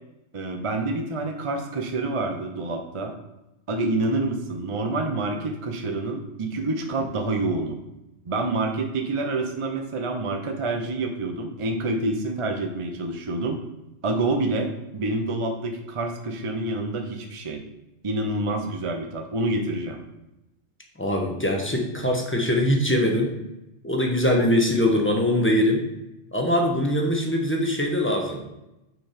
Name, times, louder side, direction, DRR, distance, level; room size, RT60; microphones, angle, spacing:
voice 1, 0.3-3.1 3.7-7.8 8.3-13.6 14.0-17.6 18.0-20.0, right 2 dB, 35° right, 4 dB, 0.6 m, -27 dB
voice 2, 21.0-23.3 23.8-25.8 26.3-28.4, left 1 dB, 10° left, 1 dB, 0.9 m, -22 dB
5.9 x 4.7 x 5.1 m, 0.93 s
omnidirectional pair, 1.4 m